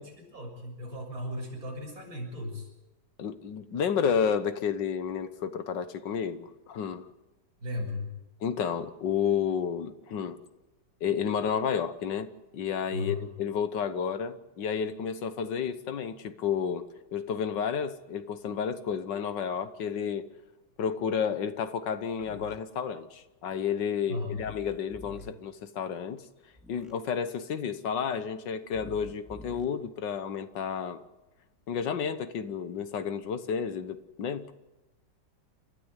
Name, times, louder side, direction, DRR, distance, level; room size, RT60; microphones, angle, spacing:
voice 1, 0.0-2.7 7.6-8.1 12.9-13.3 24.1-24.4, left 2 dB, 55° right, 0 dB, 7.2 m, -36 dB
voice 2, 3.2-7.1 8.4-10.4 11.0-12.3 12.5-16.9 17.1-20.3 20.8-26.2 26.7-31.0 31.7-34.5, left 7 dB, 80° left, 11 dB, 1.8 m, -31 dB
sound 1, 22.2-22.6 24.3-25.3 26.5-26.9 28.7-29.6, left 2 dB, ahead, 3.6 m, -47 dB
29.0 x 13.0 x 8.2 m, 1.0 s
omnidirectional pair, 1.9 m